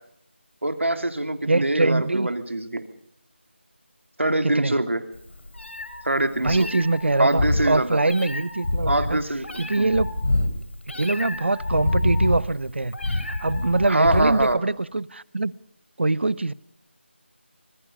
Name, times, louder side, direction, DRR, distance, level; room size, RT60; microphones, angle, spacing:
voice 1, 0.6-2.8 4.2-5.0 6.0-6.7 7.2-8.0 8.8-10.0 13.9-14.6, right 1 dB, 90° right, 2.9 m, -24 dB
voice 2, 1.4-2.3 4.4-4.7 6.4-9.2 9.6-10.1 10.9-15.5 16.0-16.5, right 2 dB, 65° right, 0.8 m, -23 dB
Meow, 5.2-14.5, left 2 dB, 70° left, 3.9 m, -27 dB
25.0 x 20.0 x 5.4 m
figure-of-eight pair, 170°, 7 cm